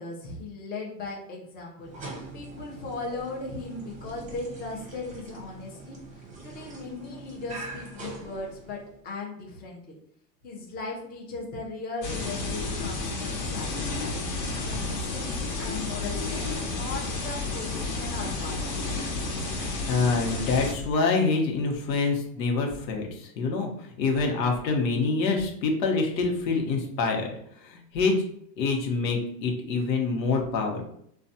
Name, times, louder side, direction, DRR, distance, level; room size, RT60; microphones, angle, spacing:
voice 1, 0.0-1.9 2.3-9.9 10.4-14.2 14.6-18.7, left 3 dB, 20° left, -2 dB, 0.6 m, -38 dB
sound 1, 1.8-9.0, right 3 dB, 15° right, 0.7 m, -43 dB
sound 2, 12.0-20.7, left 3 dB, 45° left, 1.0 m, -31 dB
voice 2, 19.9-27.3 27.6-28.2 28.6-30.8, left 4 dB, 85° left, 1 dB, 1.0 m, -26 dB
3.2 x 2.3 x 2.7 m, 0.68 s
supercardioid pair, 120°, 50 cm